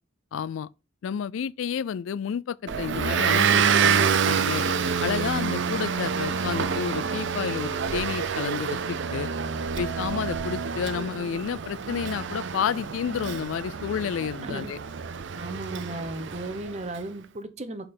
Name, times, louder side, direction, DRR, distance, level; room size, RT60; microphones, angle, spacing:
voice 1, 0.3-0.7 1.0-4.6 5.0-9.3 9.8-14.8, left 7 dB, 75° left, 0.3 m, -31 dB
Motor vehicle (road) / Engine, 2.7-16.9, right 6 dB, 65° right, 0.6 m, -27 dB
voice 2, 14.4-14.7 15.4-17.9, right 2 dB, 35° right, 0.9 m, -35 dB
6.6 x 5.2 x 4.3 m
head